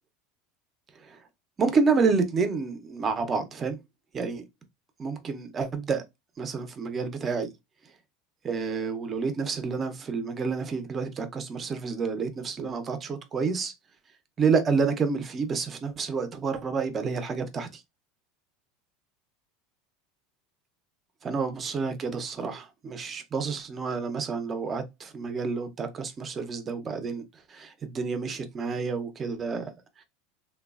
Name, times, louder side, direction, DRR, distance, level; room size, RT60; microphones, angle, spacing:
voice 1, 1.6-3.8 4.1-4.4 5.0-6.0 6.4-7.5 8.4-13.7 14.4-17.7 21.2-27.2 27.5-29.7, right 5 dB, 25° right, 0.5 m, -29 dB
3.0 x 2.2 x 2.3 m
supercardioid pair, 130°, 0 cm